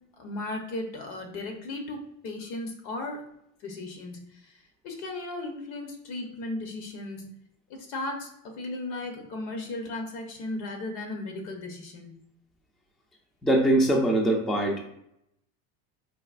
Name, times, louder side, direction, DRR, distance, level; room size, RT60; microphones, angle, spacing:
voice 1, 0.2-3.2 3.6-7.2 7.8-8.3 8.6-12.1, left 2 dB, 65° left, 3 dB, 1.0 m, -36 dB
voice 2, 13.4-14.8, right 1 dB, ahead, 0 dB, 0.4 m, -22 dB
4.0 x 2.6 x 2.4 m, 0.77 s
supercardioid pair, 100°, 41 cm